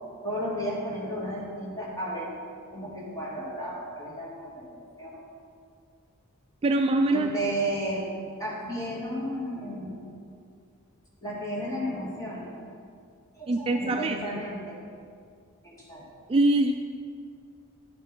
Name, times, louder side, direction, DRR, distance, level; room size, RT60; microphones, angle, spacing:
voice 1, 0.2-2.3 2.7-5.2 7.1-8.1 8.4-10.1 11.2-12.5 13.4-14.8 15.6-16.1, right 1 dB, 15° left, -5 dB, 2.1 m, -33 dB
voice 2, 6.6-7.3 13.5-14.2 16.3-16.7, right 2 dB, 25° right, 4 dB, 0.3 m, -23 dB
11.0 x 6.1 x 4.4 m, 2.3 s
head